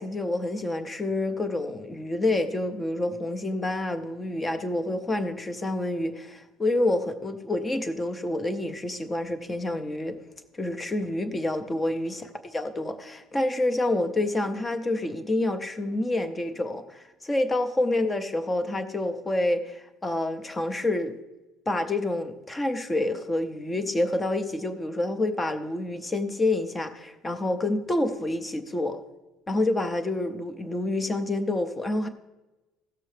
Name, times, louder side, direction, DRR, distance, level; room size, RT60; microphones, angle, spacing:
voice 1, 0.0-10.2 10.5-12.2 12.5-21.1 21.7-29.0 29.5-32.1, left 2 dB, 15° left, 9 dB, 0.7 m, -28 dB
16.5 x 6.8 x 3.3 m, 1.1 s
cardioid pair, 160°, 0 cm